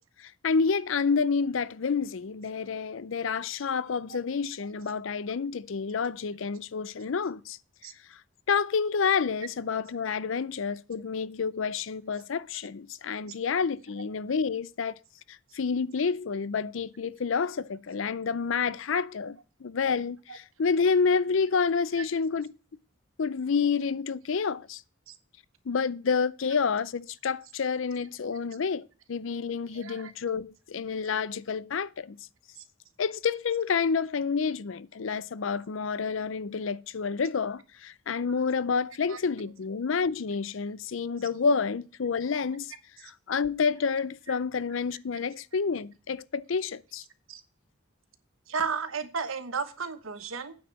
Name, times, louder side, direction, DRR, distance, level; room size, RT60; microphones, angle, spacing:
voice 1, 0.2-7.6 8.1-8.2 8.5-15.0 15.3-22.5 23.2-24.8 25.7-32.2 33.0-42.7 43.0-47.0, left 5 dB, 70° left, 0.5 m, -29 dB
voice 2, 29.7-30.1 39.1-39.2 47.3-47.4 48.5-50.5, right 5 dB, 85° right, 1.3 m, -33 dB
9.2 x 4.8 x 7.4 m
head